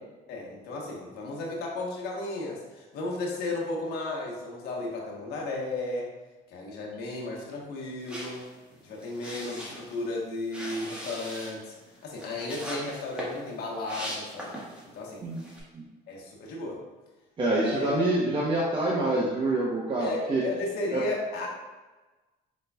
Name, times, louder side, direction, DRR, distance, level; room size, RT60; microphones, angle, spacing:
voice 1, 0.3-6.1 6.5-8.4 8.8-11.7 12.0-14.5 14.9-15.2 16.1-16.8 17.6-18.1 20.0-21.5, left 2 dB, 75° left, -2 dB, 1.1 m, -34 dB
sound 1, 8.0-14.9 15.3-15.6, equal, 5° right, 1.3 m, -40 dB
voice 2, 17.4-20.4 20.9-21.0, right 2 dB, 30° right, -5 dB, 0.8 m, -26 dB
5.1 x 3.9 x 2.3 m, 1.2 s
cardioid pair, 110°, 17 cm